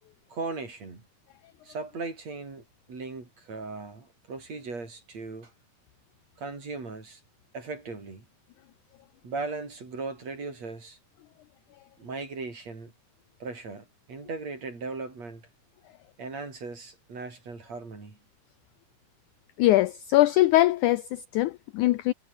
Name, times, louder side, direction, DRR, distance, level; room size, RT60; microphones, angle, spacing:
voice 1, 0.3-1.0 1.6-5.5 6.4-7.2 7.5-8.3 9.2-11.0 12.0-12.9 13.4-15.4 16.2-18.2, right 3 dB, 45° right, 7.0 m, -38 dB
voice 2, 19.6-22.1, left 16 dB, 80° left, 1.8 m, -22 dB
omnidirectional pair, 4.1 m